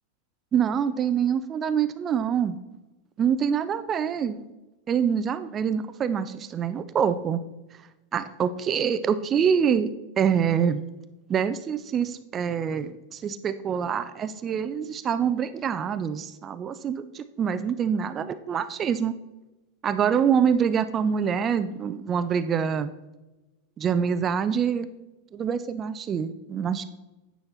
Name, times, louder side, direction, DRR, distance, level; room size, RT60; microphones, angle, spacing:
voice 1, 0.5-2.6 3.2-4.4 4.9-7.4 8.1-9.9 10.2-10.8 11.3-19.1 19.8-22.9 23.8-24.9 25.3-26.8, right 7 dB, 25° right, 12 dB, 0.3 m, -25 dB
9.6 x 5.6 x 4.3 m, 1.1 s
figure-of-eight pair, 90°, 0 cm